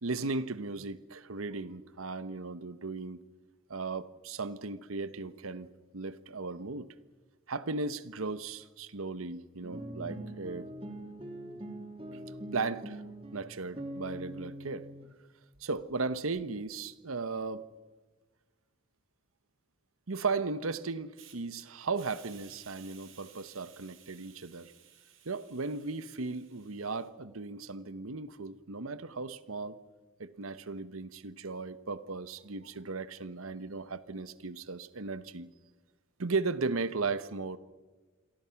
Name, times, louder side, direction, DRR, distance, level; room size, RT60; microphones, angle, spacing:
voice 1, 0.0-3.2 3.7-5.7 5.9-6.9 7.5-10.7 12.1-12.2 12.5-13.0 13.3-14.9 15.6-17.6 20.1-24.7 25.2-29.8 30.2-35.5 36.2-37.6, right 3 dB, 90° right, 15 dB, 1.1 m, -36 dB
sound 1, 9.6-15.1, right 1 dB, 25° right, 2.5 m, -43 dB
Hiss, 21.1-21.4 21.9-27.1, right 10 dB, 70° right, 3.5 m, -57 dB
28.0 x 22.5 x 5.9 m, 1.3 s
head